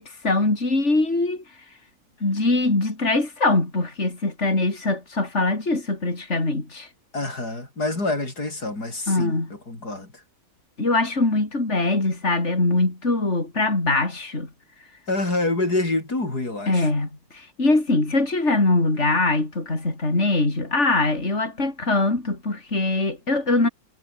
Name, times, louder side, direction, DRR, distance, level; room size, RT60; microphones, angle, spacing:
voice 1, 0.0-1.4 2.2-6.9 9.1-9.5 10.8-14.5 16.7-23.7, left 2 dB, 45° left, 5.1 m, -22 dB
voice 2, 7.1-10.2 15.1-16.9, left 2 dB, 85° left, 7.0 m, -27 dB
omnidirectional pair, 1.6 m